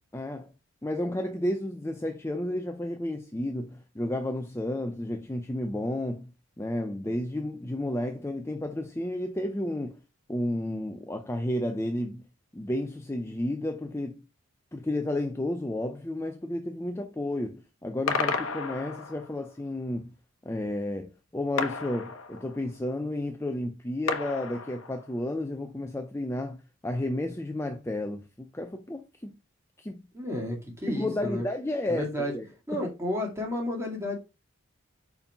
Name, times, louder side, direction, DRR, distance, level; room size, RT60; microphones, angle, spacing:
voice 1, 0.1-0.5 0.8-6.3 6.6-10.0 10.3-12.2 12.5-14.2 14.7-20.1 20.4-29.3 29.8-30.0 30.9-32.8, left 1 dB, 10° left, 0.5 m, -32 dB
sound 1, 18.1-19.4 21.6-22.8 24.1-25.2, left 4 dB, 70° left, 0.9 m, -32 dB
voice 2, 30.1-31.4 31.9-32.3 32.7-34.1, left 1 dB, 15° right, 2.1 m, -32 dB
5.4 x 4.7 x 5.5 m
head